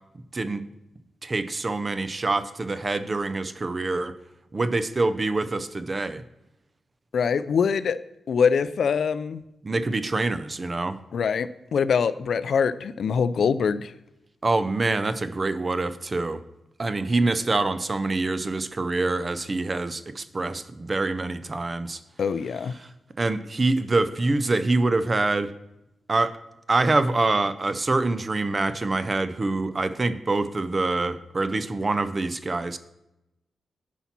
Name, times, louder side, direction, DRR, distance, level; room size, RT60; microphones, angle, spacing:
voice 1, 0.3-0.7 1.2-4.2 4.5-6.2 9.6-11.0 14.4-16.4 16.8-22.0 22.8-22.9 23.2-25.5 26.1-26.4 26.7-32.8, right 3 dB, 25° right, 0.4 m, -25 dB
voice 2, 7.1-8.0 8.3-9.4 11.1-13.9 22.2-22.7, left 6 dB, 60° left, 0.4 m, -24 dB
10.0 x 4.2 x 5.8 m
wide cardioid pair, 170°, 0 cm